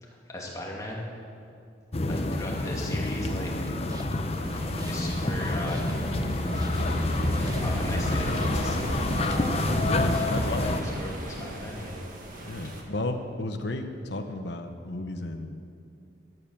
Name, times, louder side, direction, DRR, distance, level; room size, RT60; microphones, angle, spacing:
voice 1, 0.0-1.0 2.1-3.5 4.9-5.8 7.6-8.9 10.4-12.0 12.6-12.7, left 1 dB, 15° left, -3 dB, 2.4 m, -37 dB
sound 1, 1.9-10.8, left 2 dB, 35° left, 0.6 m, -28 dB
sound 2, 3.4-10.5, right 1 dB, 20° right, 0.7 m, -44 dB
sound 3, 4.3-12.8, equal, 45° right, 1.8 m, -34 dB
voice 2, 9.8-10.9 12.4-15.7, left 2 dB, 65° left, 5 dB, 1.0 m, -33 dB
13.5 x 9.9 x 7.0 m, 2.5 s
head